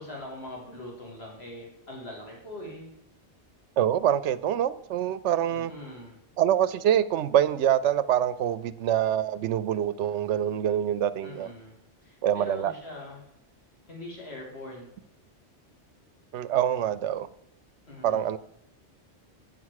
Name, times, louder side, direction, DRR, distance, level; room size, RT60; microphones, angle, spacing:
voice 1, 0.0-2.9 5.5-6.2 11.2-11.8 12.0-13.2 13.9-14.9 17.9-18.3, left 1 dB, 60° left, 2.8 m, -42 dB
voice 2, 3.8-5.7 6.4-11.5 12.2-12.7 16.3-17.3 18.0-18.4, right 10 dB, 75° right, 0.9 m, -25 dB
9.1 x 5.9 x 6.4 m
omnidirectional pair, 1.2 m